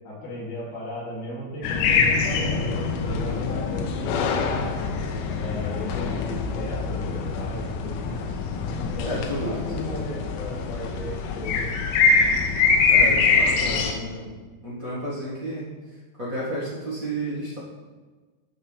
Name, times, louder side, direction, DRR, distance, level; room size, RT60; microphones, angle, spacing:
voice 1, 0.0-4.6 5.4-8.2 8.9-11.7, left 1 dB, 55° left, -7 dB, 4.5 m, -35 dB
sound 1, 1.6-13.9, left 4 dB, 90° left, 3.3 m, -24 dB
voice 2, 9.0-9.8 12.9-14.3 14.6-15.7 16.2-17.6, right 1 dB, 65° right, -10 dB, 0.8 m, -31 dB
14.0 x 5.6 x 3.4 m, 1.3 s
omnidirectional pair, 5.4 m